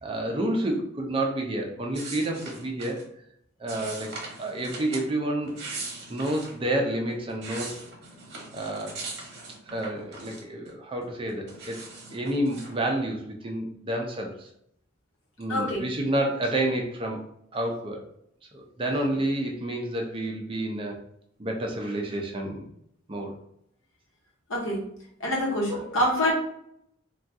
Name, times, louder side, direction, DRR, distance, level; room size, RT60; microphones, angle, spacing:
voice 1, 0.0-3.0 3.6-4.1 4.4-5.6 6.1-7.8 8.5-9.0 9.7-11.8 12.1-14.5 15.4-17.2 17.5-18.0 18.5-21.0 21.4-22.7 23.1-23.4 25.7-26.1, right 1 dB, 25° right, 1 dB, 0.5 m, -29 dB
sound 1, 1.9-3.1 3.7-5.1 5.4-6.6 7.1-10.7 11.0-12.7, right 3 dB, 55° right, 0.9 m, -40 dB
voice 2, 15.5-15.8 24.5-24.9 25.2-26.3, left 1 dB, 90° left, -2 dB, 1.0 m, -26 dB
3.4 x 2.3 x 2.7 m, 0.72 s
head